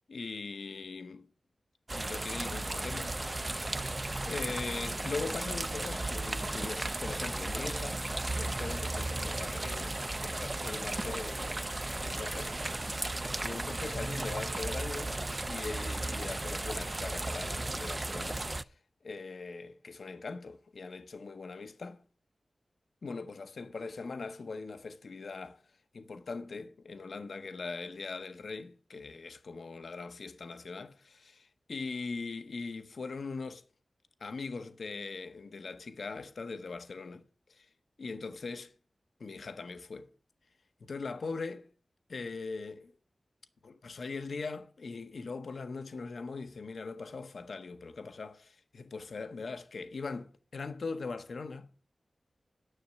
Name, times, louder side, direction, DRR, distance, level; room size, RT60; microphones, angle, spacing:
voice 1, 0.1-1.3 1.9-3.1 4.2-8.0 8.3-11.7 12.0-12.7 13.4-15.2 15.5-18.7 19.0-22.0 23.0-25.6 25.9-33.6 34.2-37.2 37.5-37.7 38.0-38.7 39.2-40.1 40.8-41.7 42.1-42.9 43.6-51.7, left 4 dB, 75° left, 0.8 m, -41 dB
sound 1, 1.9-18.6, right 2 dB, 30° right, 0.4 m, -35 dB
10.0 x 6.5 x 8.3 m
wide cardioid pair, 70°, 0 cm